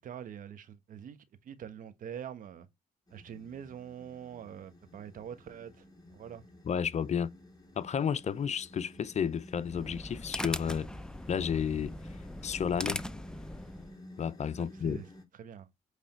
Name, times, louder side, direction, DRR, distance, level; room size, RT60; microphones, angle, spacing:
voice 1, 0.0-2.7 3.1-6.4 14.6-15.1 15.3-15.7, right 9 dB, 70° right, 1.2 m, -45 dB
sound 1, 3.1-15.2, left 1 dB, 25° left, 3.2 m, -54 dB
voice 2, 6.6-7.3 7.8-10.9 11.3-11.9 12.4-13.0 14.2-15.0, left 7 dB, 50° left, 0.7 m, -32 dB
sound 2, 9.5-14.0, left 1 dB, 5° left, 0.7 m, -40 dB
8.3 x 3.4 x 4.3 m
supercardioid pair, 60°, 14 cm